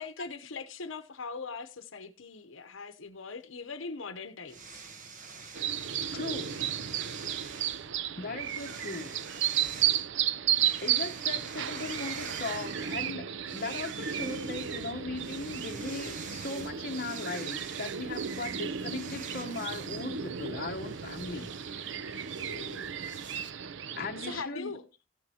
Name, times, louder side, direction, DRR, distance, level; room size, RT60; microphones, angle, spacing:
voice 1, 0.0-4.6 22.3-22.9 24.2-24.8, left 4 dB, 70° left, 0.9 m, -41 dB
sound 1, 4.5-7.9 8.4-10.1 10.5-13.1 13.4-23.5, right 5 dB, 40° right, 1.1 m, -47 dB
sound 2, 5.5-24.4, right 9 dB, 60° right, 0.5 m, -34 dB
voice 2, 6.0-6.6 8.2-9.1 10.8-22.2 24.0-24.7, left 3 dB, 45° left, 1.0 m, -38 dB
14.5 x 9.5 x 2.8 m
head